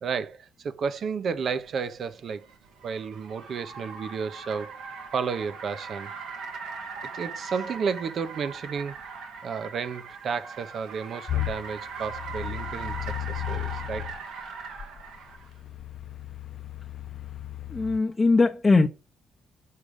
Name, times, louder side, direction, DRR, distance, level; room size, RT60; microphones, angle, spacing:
voice 1, 0.0-2.5 2.8-4.7 5.1-6.1 7.1-9.0 9.4-14.1, right 6 dB, 55° right, 0.9 m, -32 dB
Car, 1.6-15.5, right 5 dB, 90° right, 1.7 m, -40 dB
sound 1, 11.3-14.2 14.8-18.0, left 13 dB, 55° left, 0.6 m, -35 dB
voice 2, 17.7-18.9, left 3 dB, 25° left, 0.8 m, -20 dB
6.6 x 5.1 x 5.1 m
cardioid pair, 90°, 0 cm